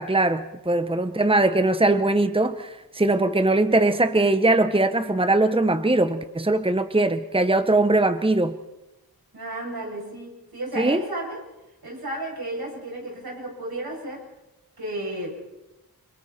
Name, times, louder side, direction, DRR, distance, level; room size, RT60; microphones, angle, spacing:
voice 1, 0.0-8.5 10.8-11.0, right 2 dB, 15° right, 10 dB, 1.1 m, -21 dB
voice 2, 9.3-11.5 11.8-14.2 14.8-15.5, right 1 dB, 80° right, -2 dB, 8.0 m, -33 dB
29.0 x 25.5 x 4.4 m, 0.99 s
wide cardioid pair, 45°, 36 cm